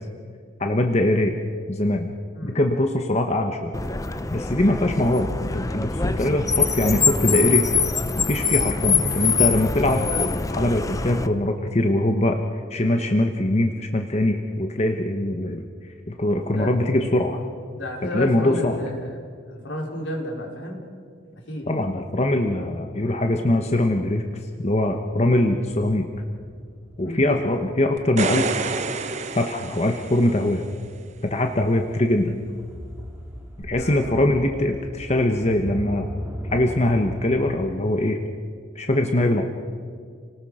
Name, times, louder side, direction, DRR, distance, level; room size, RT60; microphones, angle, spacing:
voice 1, 0.6-1.3 1.7-2.1 2.4-3.8 4.3-7.7 8.3-12.4 12.7-15.7 16.1-17.4 18.1-18.9 21.7-24.3 24.6-26.1 27.0-28.5 29.3-30.6 31.2-32.4 33.6-36.1 36.5-38.2 38.7-39.4, left 1 dB, 35° left, 4 dB, 1.1 m, -22 dB
Car, 3.7-11.3, left 5 dB, 15° left, 0.6 m, -24 dB
voice 2, 17.7-19.2 19.5-20.8 21.5-21.7 27.0-27.2 33.7-34.3, left 1 dB, 75° left, -1 dB, 4.5 m, -32 dB
sound 1, 24.6-37.8, equal, 10° right, 2.0 m, -39 dB
sound 2, 28.0-30.5 33.6-33.7, right 3 dB, 35° right, 1.0 m, -28 dB
30.0 x 19.0 x 5.0 m, 2.1 s
head